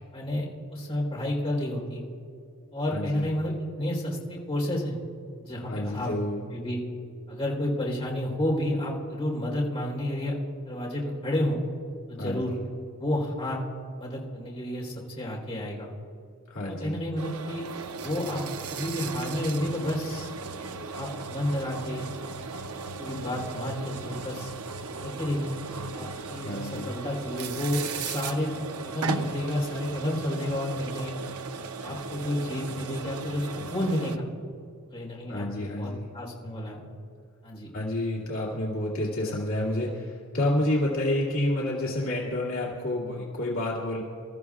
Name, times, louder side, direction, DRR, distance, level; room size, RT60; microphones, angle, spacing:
voice 1, 0.1-2.0 2.7-4.9 5.4-6.1 6.5-6.8 7.3-10.4 10.6-11.6 12.1-12.5 13.0-13.6 14.0-15.9 16.7-17.7 18.0-18.4 18.7-20.3 20.9-22.1 23.0-24.5 25.0-25.5 25.9-28.5 28.8-31.1 31.8-34.3 34.9-36.8 37.4-37.7, left 1 dB, 25° left, -3 dB, 3.9 m, -30 dB
voice 2, 2.9-3.3 5.7-6.5 12.2-12.4 16.5-17.0 26.4-26.9 35.3-36.1 37.7-44.0, left 1 dB, 65° left, -5 dB, 2.4 m, -29 dB
sound 1, 17.2-34.2, right 5 dB, 80° right, 0.7 m, -37 dB
27.5 x 13.5 x 2.4 m, 2.5 s
head